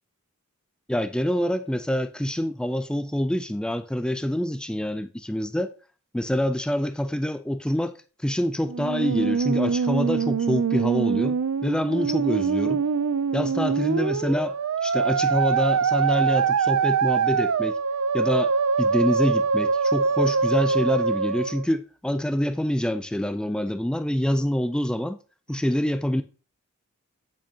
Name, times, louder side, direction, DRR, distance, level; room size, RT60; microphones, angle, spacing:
voice 1, 0.9-5.7 6.1-8.0 8.2-12.8 13.3-14.6 14.8-17.8 18.1-25.2 25.5-26.2, equal, 5° left, 0.3 m, -26 dB
Musical instrument, 8.7-21.7, right 5 dB, 65° right, 0.5 m, -24 dB
8.5 x 6.1 x 2.8 m
head